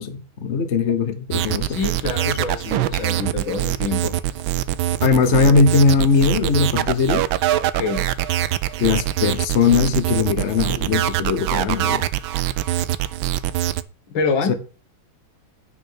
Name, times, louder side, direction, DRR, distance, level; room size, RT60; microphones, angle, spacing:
voice 1, 0.0-1.7 5.0-7.3 8.8-12.0 14.5-14.6, left 5 dB, 45° left, 1.0 m, -19 dB
sound 1, 1.3-13.8, right 14 dB, 75° right, 1.4 m, -23 dB
voice 2, 1.7-4.1 7.7-8.1 14.1-14.5, left 4 dB, 70° left, 2.2 m, -25 dB
9.5 x 5.5 x 6.4 m
omnidirectional pair, 2.3 m